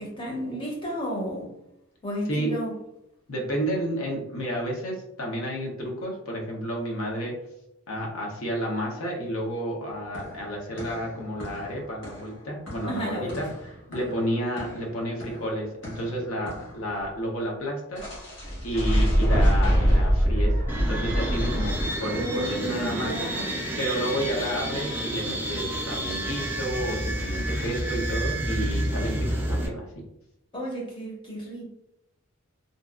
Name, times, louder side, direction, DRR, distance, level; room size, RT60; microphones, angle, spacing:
voice 1, 0.0-1.5 2.0-2.8 12.8-13.4 22.1-23.6 30.5-31.6, equal, 25° left, -3 dB, 0.6 m, -32 dB
voice 2, 3.3-7.4 7.9-18.0 18.6-23.3 23.8-29.9, equal, 75° left, -1 dB, 0.7 m, -31 dB
sound 1, 9.9-16.9 18.0-21.9, equal, 55° left, 1.2 m, -26 dB
sound 2, 20.7-29.7, right 1 dB, 10° right, 0.3 m, -30 dB
2.6 x 2.3 x 2.3 m, 0.84 s
head